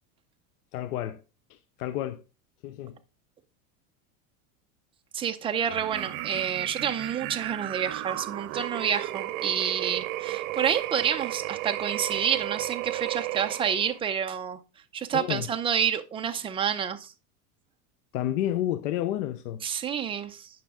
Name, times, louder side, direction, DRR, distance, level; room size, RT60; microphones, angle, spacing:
voice 1, 0.7-1.2 1.5-2.2 2.6-3.0 15.1-15.5 18.1-19.6, left 12 dB, 80° left, 0.7 m, -30 dB
voice 2, 5.1-14.6 14.9-17.1 19.6-20.5, right 8 dB, 10° right, 0.5 m, -29 dB
sound 1, 5.6-14.0, right 16 dB, 65° right, 0.9 m, -34 dB
9.5 x 5.8 x 3.6 m
supercardioid pair, 135°, 45 cm